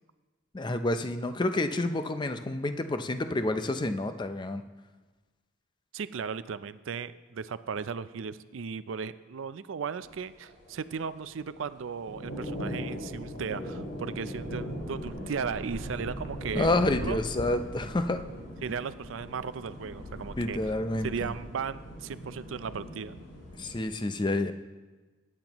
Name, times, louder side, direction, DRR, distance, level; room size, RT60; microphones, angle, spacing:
voice 1, 0.5-4.6 16.5-18.2 20.4-21.3 23.6-24.5, left 2 dB, 25° left, 9 dB, 0.5 m, -29 dB
voice 2, 5.9-17.2 18.6-20.6 21.0-23.2, right 6 dB, 80° right, 14 dB, 0.4 m, -36 dB
sound 1, 10.0-23.8, equal, 90° left, 4.6 m, -40 dB
sound 2, 13.8-13.9 14.2-14.3 14.8-20.0, left 1 dB, 55° left, 1.2 m, -42 dB
20.0 x 8.8 x 3.0 m, 1.3 s
head